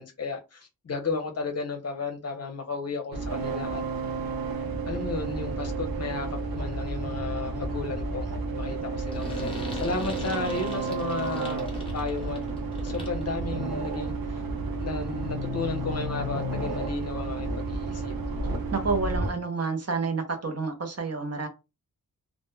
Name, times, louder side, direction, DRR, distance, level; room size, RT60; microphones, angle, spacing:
voice 1, 0.0-3.8 4.9-11.6 11.9-12.4 12.8-14.4 14.8-18.2, left 4 dB, 45° left, 0.6 m, -34 dB
sound 1, 3.1-19.3, right 3 dB, 80° right, 0.7 m, -31 dB
sound 2, 9.1-13.3, left 1 dB, 15° left, 0.9 m, -38 dB
voice 2, 18.7-21.5, right 4 dB, 45° right, 0.6 m, -29 dB
2.1 x 2.1 x 3.0 m
wide cardioid pair, 90°, 35 cm